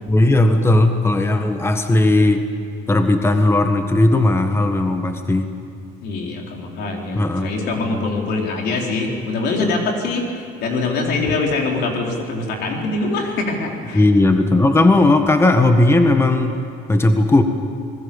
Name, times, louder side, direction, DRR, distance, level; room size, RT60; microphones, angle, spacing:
voice 1, 0.1-2.4 2.9-5.5 7.1-7.5 7.9-8.1 11.3-11.4 13.9-16.6 16.9-17.4, left 2 dB, 15° left, 6 dB, 1.5 m, -16 dB
voice 2, 6.0-14.1, left 3 dB, 80° left, 1 dB, 4.3 m, -23 dB
26.0 x 20.5 x 7.2 m, 2.4 s
cardioid pair, 110°, 17 cm